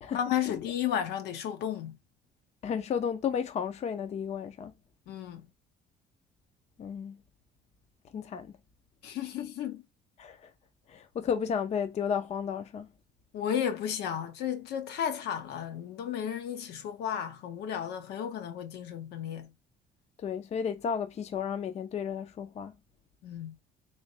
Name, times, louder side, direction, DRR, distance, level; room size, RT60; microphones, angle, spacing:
voice 1, 0.1-2.0 5.1-5.5 9.0-9.8 13.3-19.5 23.2-23.6, left 9 dB, 75° left, 0.9 m, -33 dB
voice 2, 2.6-4.7 6.8-7.2 8.1-8.5 10.2-10.4 10.9-12.9 20.2-22.7, left 7 dB, 40° left, 0.5 m, -33 dB
3.2 x 3.1 x 2.8 m
cardioid pair, 110°, 17 cm